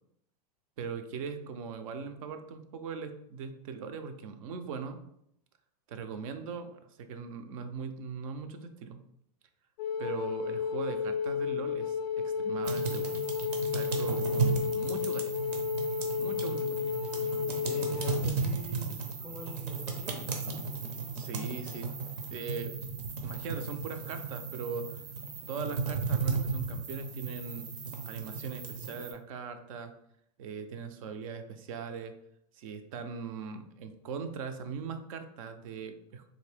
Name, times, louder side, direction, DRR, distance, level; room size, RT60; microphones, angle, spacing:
voice 1, 0.8-5.0 5.9-9.0 10.0-13.2 13.5-15.4 16.2-17.0 21.1-21.9 22.3-22.9 23.2-25.0 25.5-27.7 28.0-29.9 30.4-32.1 32.5-36.2, right 5 dB, 55° right, 8 dB, 0.5 m, -40 dB
Wind instrument woodwind instrument, 9.8-18.2, left 6 dB, 80° left, 0.4 m, -32 dB
sound 1, 12.6-29.1, right 5 dB, 75° right, 0.8 m, -35 dB
voice 2, 16.4-17.0 17.6-18.9 19.2-20.7, left 1 dB, 5° left, -1 dB, 0.5 m, -45 dB
3.7 x 2.6 x 3.3 m, 0.75 s
supercardioid pair, 165°, 21 cm